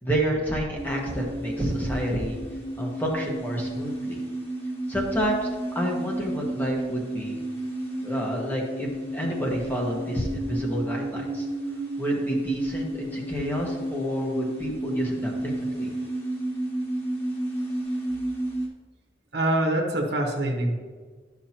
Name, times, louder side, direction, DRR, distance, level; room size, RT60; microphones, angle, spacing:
voice 1, 0.0-2.4 2.8-4.2 4.9-5.5 5.7-7.4 8.0-11.5 12.0-15.9, equal, 10° left, -2 dB, 1.3 m, -29 dB
sound 1, 0.8-18.7, right 1 dB, 35° left, 1.7 m, -32 dB
voice 2, 19.3-20.7, right 1 dB, 65° right, 1 dB, 1.3 m, -24 dB
11.5 x 6.1 x 2.9 m, 1.5 s
head